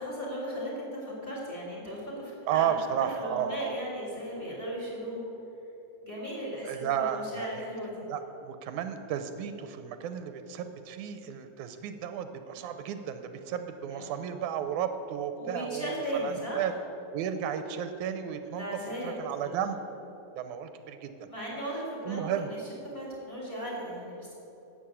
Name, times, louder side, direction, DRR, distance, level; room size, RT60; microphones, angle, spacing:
voice 1, 0.0-2.7 3.2-5.2 6.0-8.1 13.9-14.4 15.4-16.6 18.6-19.6 21.3-22.6 22.9-24.3, equal, 20° left, -5 dB, 4.1 m, -37 dB
voice 2, 2.5-3.8 6.6-7.6 8.1-16.0 16.2-16.7 17.1-18.7 19.0-19.8 20.4-21.3 22.0-22.5, right 9 dB, 85° right, 9 dB, 2.2 m, -33 dB
12.5 x 8.7 x 8.7 m, 3.0 s
omnidirectional pair, 3.5 m